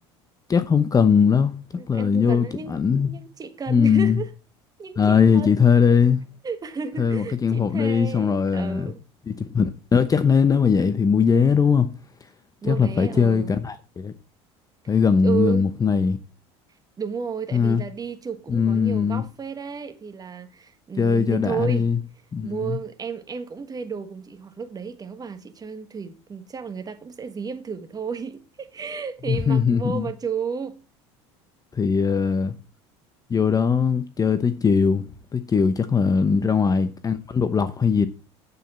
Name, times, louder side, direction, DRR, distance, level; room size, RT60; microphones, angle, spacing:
voice 1, 0.5-1.5 1.9-3.1 3.7-4.2 5.0-6.2 7.0-8.9 9.3-11.9 12.6-14.1 14.9-16.2 17.5-17.8 18.5-19.2 21.0-22.0 22.3-22.8 29.3-30.1 31.7-32.5 33.3-38.1, left 6 dB, 25° left, 0.9 m, -20 dB
voice 2, 1.8-4.3 4.8-5.7 6.4-9.0 12.6-13.6 15.2-15.8 17.0-21.9 22.4-30.8 36.2-36.6, right 6 dB, 25° right, 1.5 m, -33 dB
8.4 x 7.4 x 4.3 m
supercardioid pair, 90°, 14 cm